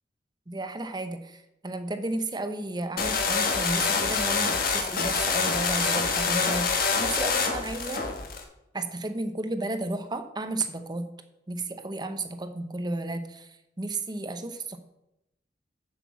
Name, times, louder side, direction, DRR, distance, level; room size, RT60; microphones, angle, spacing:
voice 1, 0.5-8.1 8.7-11.1 11.5-13.5 13.8-14.8, right 2 dB, 25° right, 9 dB, 0.8 m, -33 dB
sound 1, 3.0-8.4, left 5 dB, 50° left, 1.4 m, -26 dB
7.1 x 6.6 x 7.3 m, 0.88 s
head